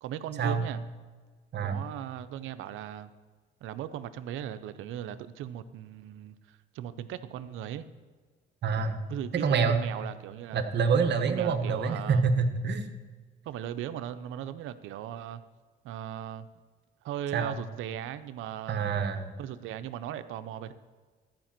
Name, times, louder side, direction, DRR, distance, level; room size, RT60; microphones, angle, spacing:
voice 1, 0.0-0.8 1.6-3.1 3.6-7.8 9.1-10.7 11.3-12.3 13.4-15.4 15.8-16.5 17.0-18.8 19.4-20.7, right 10 dB, 90° right, 12 dB, 0.6 m, -38 dB
voice 2, 1.5-1.8 8.6-9.0 9.4-9.8 10.5-12.9 17.3-17.6 18.7-19.3, right 5 dB, 60° right, 8 dB, 1.1 m, -26 dB
13.0 x 5.2 x 7.4 m, 1.4 s
cardioid pair, 90°, 20 cm